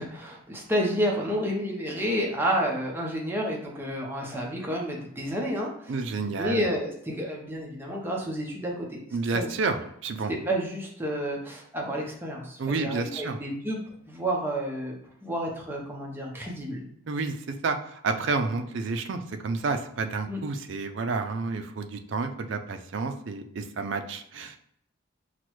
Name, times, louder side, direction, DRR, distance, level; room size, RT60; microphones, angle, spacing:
voice 1, 0.0-6.0 6.4-9.0 9.3-9.5 10.3-13.8 14.1-15.0 15.2-16.8 20.3-20.4, equal, 10° right, -1 dB, 0.7 m, -30 dB
voice 2, 5.9-6.7 9.1-10.3 12.6-13.4 17.1-24.6, right 4 dB, 60° right, 7 dB, 0.4 m, -30 dB
5.9 x 2.2 x 3.0 m, 0.72 s
head